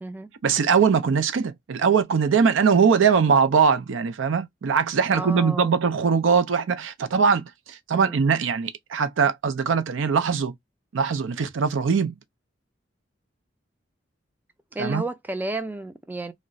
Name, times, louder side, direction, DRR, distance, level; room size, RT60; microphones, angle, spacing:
voice 1, 0.4-10.5 10.9-12.1 14.8-15.0, right 6 dB, 80° right, 0.4 m, -21 dB
voice 2, 5.1-5.8 7.9-8.2 14.7-16.3, right 2 dB, 10° right, 0.4 m, -32 dB
2.4 x 2.1 x 3.8 m
head